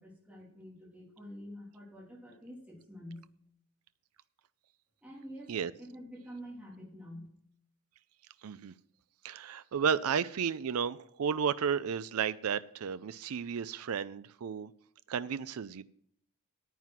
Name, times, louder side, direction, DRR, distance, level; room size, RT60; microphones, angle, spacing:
voice 1, 0.0-3.2 5.0-7.3, equal, 5° right, -4 dB, 3.3 m, -47 dB
voice 2, 8.4-8.7 9.2-14.7 15.1-15.8, right 7 dB, 80° right, 15 dB, 0.4 m, -33 dB
9.5 x 9.3 x 5.8 m, 0.67 s
head